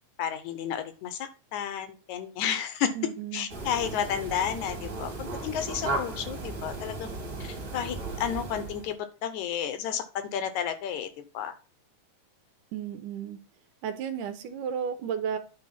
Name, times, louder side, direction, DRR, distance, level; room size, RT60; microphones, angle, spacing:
voice 1, 0.2-2.9 3.3-7.1 7.4-11.6, left 8 dB, 70° left, 10 dB, 2.0 m, -32 dB
voice 2, 3.0-3.5 12.7-13.4 13.8-15.4, right 8 dB, 75° right, 9 dB, 2.4 m, -33 dB
sound 1, 3.5-8.9, right 2 dB, 35° right, 2.6 m, -36 dB
10.0 x 3.6 x 5.7 m, 0.34 s
omnidirectional pair, 3.8 m